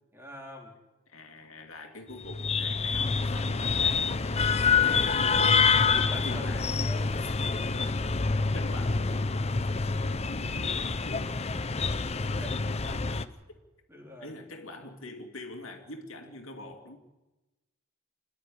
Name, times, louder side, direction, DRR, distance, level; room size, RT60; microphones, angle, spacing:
voice 1, 0.1-0.7 5.8-7.2 12.3-12.6 13.9-14.4, left 1 dB, 10° right, 3.7 m, -44 dB
voice 2, 1.1-4.3 4.6-5.7 6.1-6.8 7.2-7.3 7.7-8.0 8.3-9.7 10.0-11.4 12.5-13.3 14.2-17.0, left 2 dB, 75° left, 2.7 m, -44 dB
sound 1, 2.2-13.2, left 5 dB, 30° left, 0.7 m, -27 dB
28.0 x 11.0 x 10.0 m
head